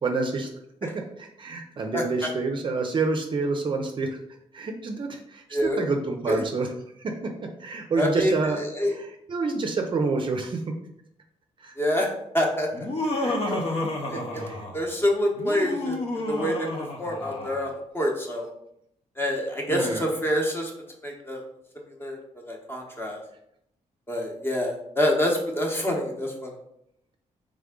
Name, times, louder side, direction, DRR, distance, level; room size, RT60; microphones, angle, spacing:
voice 1, 0.0-0.5 0.8-4.2 4.5-6.7 7.0-10.6 11.6-11.7 13.2-13.6 14.1-14.6 19.7-20.1, right 3 dB, 40° right, 4 dB, 0.5 m, -28 dB
voice 2, 8.0-8.3 8.6-8.9 11.8-12.1 12.3-12.7 13.2-13.3 13.6-13.8 14.1-14.4 14.7-16.7 17.0-18.5 19.2-20.7 21.0-21.4 22.0-22.2 22.5-23.2 24.1-26.5, equal, 15° left, 0 dB, 0.9 m, -26 dB
Laughter, 12.7-14.9 15.3-17.7, left 2 dB, 50° left, 0.8 m, -30 dB
3.6 x 3.4 x 3.7 m, 0.75 s
cardioid pair, 130°, 13 cm